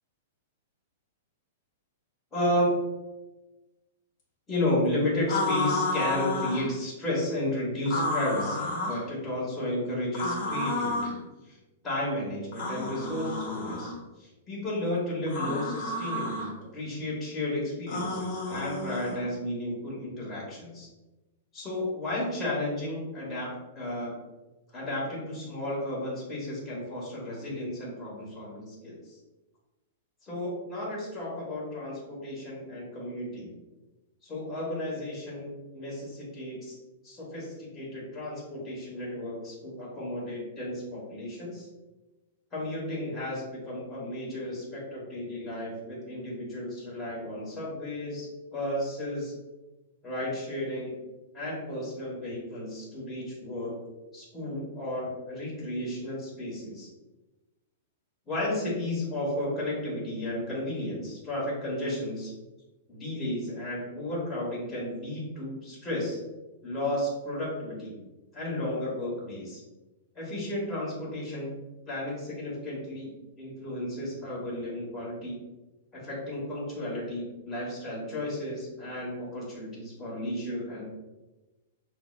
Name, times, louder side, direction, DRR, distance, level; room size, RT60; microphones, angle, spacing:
voice 1, 2.3-2.7 4.5-11.1 11.5-11.6 11.8-13.9 14.2-20.9 21.5-24.1 24.7-29.2 30.2-33.5 34.2-36.8 37.0-41.7 42.5-49.3 50.0-50.9 51.3-53.8 54.1-56.9 58.3-62.3 62.9-66.2 66.6-68.0 68.3-69.6 70.1-71.6 71.9-73.1 73.4-75.4 75.9-80.8, left 1 dB, 15° left, -6 dB, 1.2 m, -33 dB
sound 1, 5.3-6.7 7.8-9.0 10.1-11.1 12.5-13.9 15.3-16.5 17.9-19.2, left 2 dB, 40° left, 1.3 m, -31 dB
5.6 x 2.0 x 2.3 m, 1.1 s
hypercardioid pair, 160°, 0 cm